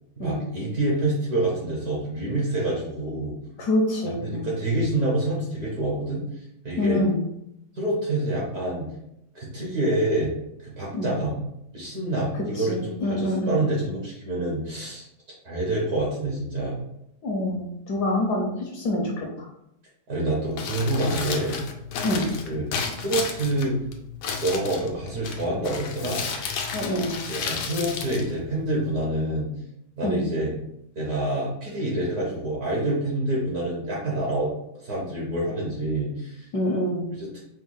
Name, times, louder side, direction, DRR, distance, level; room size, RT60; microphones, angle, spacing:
voice 1, 0.2-3.4 4.0-6.2 6.6-7.0 7.7-8.9 9.3-10.3 10.6-11.4 11.7-15.1 15.4-16.8 20.1-21.6 22.4-22.6 23.0-23.8 24.4-26.2 27.3-29.5 30.0-30.5 30.9-34.5 34.8-36.5 37.1-37.4, right 1 dB, 50° right, -4 dB, 1.4 m, -27 dB
voice 2, 3.6-4.5 6.8-7.2 10.9-11.1 12.6-13.6 17.2-19.5 22.0-22.3 26.7-27.2 30.0-30.2 36.5-37.1, left 1 dB, 65° left, -1 dB, 1.1 m, -26 dB
Crumpling crinkling, 20.4-29.0, left 5 dB, 85° left, 1.5 m, -33 dB
5.0 x 2.3 x 3.7 m, 0.80 s
omnidirectional pair, 2.2 m